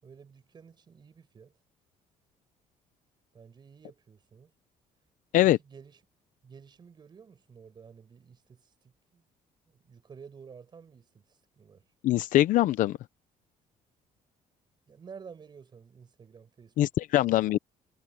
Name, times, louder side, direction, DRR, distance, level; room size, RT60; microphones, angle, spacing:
voice 1, 0.0-1.5 3.3-4.5 5.4-6.0 6.4-9.2 9.7-11.8 14.9-16.8 17.2-17.4, right 6 dB, 30° right, 5.0 m, -51 dB
voice 2, 12.0-13.0 16.8-17.6, left 14 dB, 70° left, 0.7 m, -23 dB
cardioid pair, 145°, 14 cm